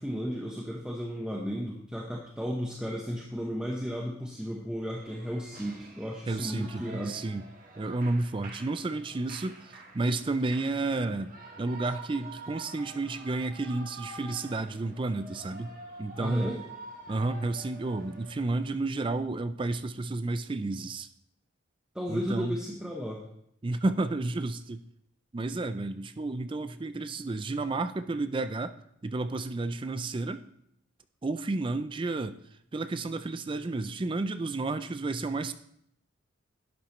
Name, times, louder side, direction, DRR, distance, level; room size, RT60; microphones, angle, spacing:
voice 1, 0.0-7.2 16.2-16.6 21.9-23.2, equal, 5° right, -3 dB, 0.9 m, -34 dB
Shout / Cheering, 4.8-18.7, right 3 dB, 40° right, 1.5 m, -48 dB
voice 2, 6.3-7.4 7.8-11.3 11.6-16.5 17.1-21.1 22.1-22.6 23.6-24.8 25.3-28.7 29.0-30.5 31.2-32.4 32.7-35.5, right 2 dB, 25° right, 11 dB, 0.3 m, -31 dB
11.5 x 8.6 x 3.1 m, 0.72 s
head